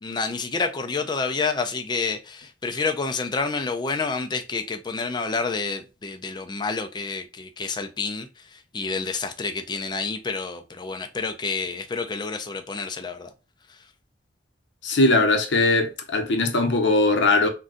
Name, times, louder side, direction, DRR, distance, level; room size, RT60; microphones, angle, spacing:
voice 1, 0.0-13.3, left 4 dB, 25° left, 0.3 m, -29 dB
voice 2, 14.8-17.5, left 2 dB, 70° left, 0.6 m, -20 dB
2.5 x 2.2 x 3.7 m
head